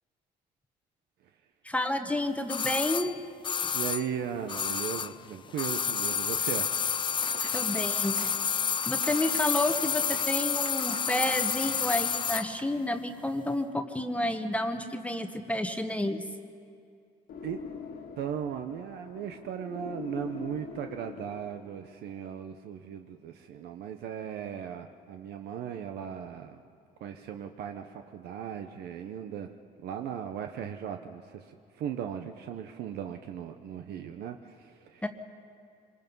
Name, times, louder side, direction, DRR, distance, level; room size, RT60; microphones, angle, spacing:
voice 1, 1.6-3.1 7.5-8.3 8.9-16.2 35.0-35.1, left 1 dB, 10° left, 6 dB, 1.1 m, -30 dB
sound 1, 2.5-5.2 5.5-12.5 12.8-12.9, left 7 dB, 30° left, 0.5 m, -30 dB
voice 2, 3.7-6.7 17.4-17.6 18.2-26.6 27.0-29.5 29.8-35.1, right 9 dB, 75° right, 6 dB, 0.9 m, -37 dB
sound 2, 6.5-12.6, right 5 dB, 50° right, 1.9 m, -46 dB
sound 3, 17.3-21.9, left 6 dB, 65° left, 1.7 m, -43 dB
25.5 x 20.5 x 5.4 m, 2.4 s
cardioid pair, 110°, 17 cm